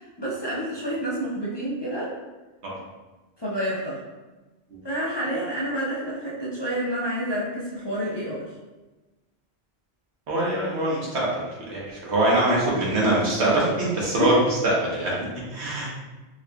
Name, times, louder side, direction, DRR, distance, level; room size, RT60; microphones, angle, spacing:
voice 1, 0.0-2.1 3.4-4.0 4.8-8.5 14.1-14.4, equal, 30° left, -7 dB, 0.5 m, -28 dB
voice 2, 10.3-11.3 11.6-14.3 14.6-15.2 15.5-15.9, right 2 dB, 80° right, -5 dB, 1.3 m, -23 dB
4.5 x 3.2 x 2.3 m, 1.2 s
omnidirectional pair, 1.1 m